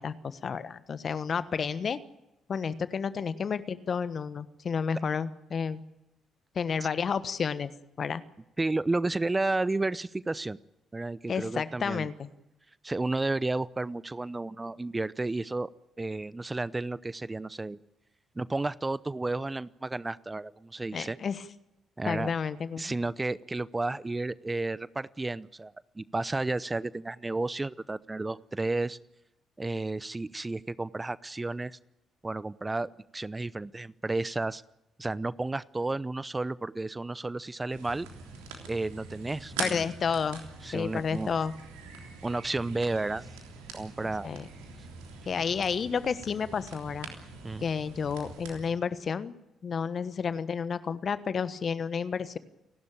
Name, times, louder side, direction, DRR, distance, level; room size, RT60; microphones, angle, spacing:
voice 1, 0.0-2.0 2.5-5.8 6.5-7.7 8.0-8.2 11.3-12.3 20.9-21.4 22.1-23.0 39.6-40.4 40.7-41.5 44.2-44.5 45.2-47.1 47.6-49.3 49.6-52.4, left 6 dB, 50° left, 14 dB, 1.3 m, -31 dB
voice 2, 8.6-10.6 10.9-12.1 12.8-15.7 16.0-17.8 18.4-21.2 22.0-22.3 22.8-29.0 29.6-31.8 32.2-34.6 35.0-38.1 38.7-39.8 40.6-41.3 42.2-43.3 43.7-44.3 47.4-47.7, right 2 dB, 20° right, 19 dB, 0.7 m, -32 dB
sound 1, 37.7-48.7, right 4 dB, 80° right, 3.4 m, -43 dB
29.5 x 12.0 x 9.0 m, 0.90 s
hypercardioid pair, 45°, 0 cm